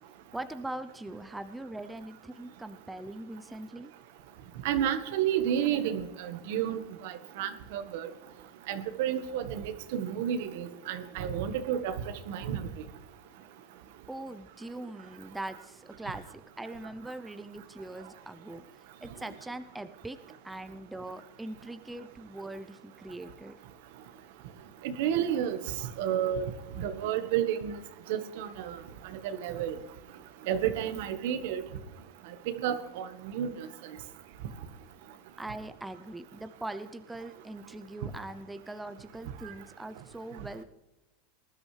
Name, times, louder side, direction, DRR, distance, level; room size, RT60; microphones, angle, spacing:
voice 1, 0.3-3.9 14.1-18.6 19.0-20.2 20.4-23.5 35.4-40.6, right 2 dB, 5° right, 10 dB, 0.6 m, -41 dB
voice 2, 4.6-8.1 8.7-11.9 12.3-12.7 24.8-25.6 26.0-26.5 26.8-27.8 28.1-28.8 29.2-29.7 30.5-31.6 32.5-33.1 33.3-33.7, right 9 dB, 65° right, 10 dB, 1.3 m, -31 dB
19.5 x 12.5 x 3.3 m, 1.0 s
supercardioid pair, 140°, 0 cm